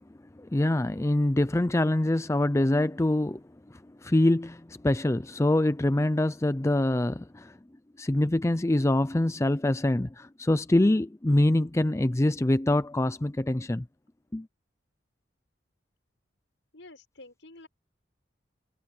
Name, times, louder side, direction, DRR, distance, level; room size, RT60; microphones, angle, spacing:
voice 1, 0.4-7.5 8.0-13.8 14.3-14.5, left 1 dB, 15° left, 0.4 m, -25 dB
voice 2, 16.7-17.7, left 2 dB, 80° left, 6.5 m, -49 dB
head